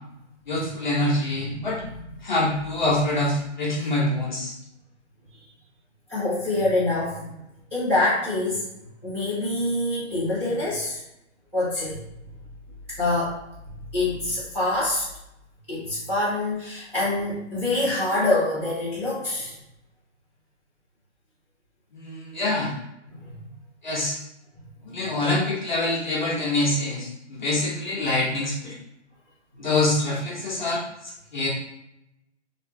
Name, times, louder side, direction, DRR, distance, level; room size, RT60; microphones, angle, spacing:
voice 1, 0.5-1.8 2.2-4.5 21.9-22.7 23.8-24.2 24.8-28.8 29.6-31.5, left 2 dB, 40° left, -5 dB, 0.7 m, -25 dB
voice 2, 1.5-1.8 5.3-5.4 6.1-7.3 7.7-8.7 9.0-11.0 11.5-12.0 13.0-13.4 13.9-15.1 15.7-19.5 23.1-23.3, left 2 dB, 10° right, -14 dB, 0.7 m, -25 dB
2.7 x 2.1 x 3.4 m, 0.86 s
hypercardioid pair, 180°, 36 cm